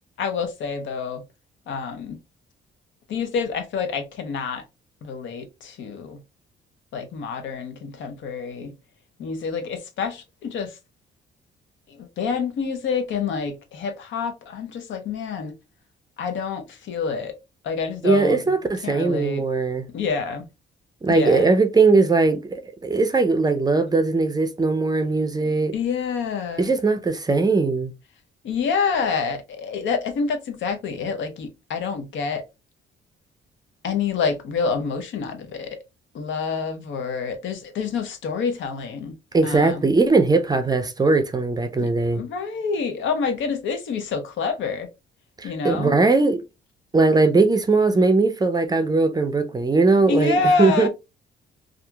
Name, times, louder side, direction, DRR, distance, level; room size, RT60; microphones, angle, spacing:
voice 1, 0.2-1.2 1.7-2.2 3.1-4.6 5.0-6.2 6.9-8.7 9.2-10.7 12.0-15.5 16.2-17.3 17.6-18.4 18.8-19.4 19.9-20.5 21.1-21.5 25.4-26.7 28.4-32.4 33.8-35.8 36.1-39.1 39.4-39.8 41.8-44.9 45.4-46.0 50.1-50.9, left 5 dB, 70° left, 0.7 m, -27 dB
voice 2, 18.0-19.9 21.0-25.7 26.6-27.9 39.3-42.2 45.4-46.4 46.9-50.9, right 3 dB, 20° right, 0.4 m, -19 dB
2.7 x 2.4 x 2.2 m
cardioid pair, 90°, 20 cm